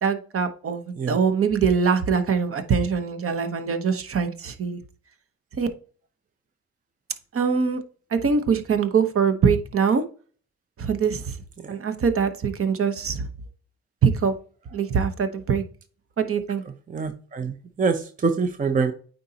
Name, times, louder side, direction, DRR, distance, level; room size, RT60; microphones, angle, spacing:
voice 1, 0.0-4.8 5.6-5.7 7.3-7.8 8.1-10.0 10.8-11.4 11.7-13.3 14.0-14.3 14.7-15.6 16.2-16.6, right 6 dB, 45° right, 8 dB, 1.0 m, -23 dB
voice 2, 16.9-18.0 18.2-18.9, right 5 dB, 25° right, 7 dB, 0.7 m, -24 dB
9.1 x 4.0 x 2.8 m, 0.41 s
cardioid pair, 90°, 30 cm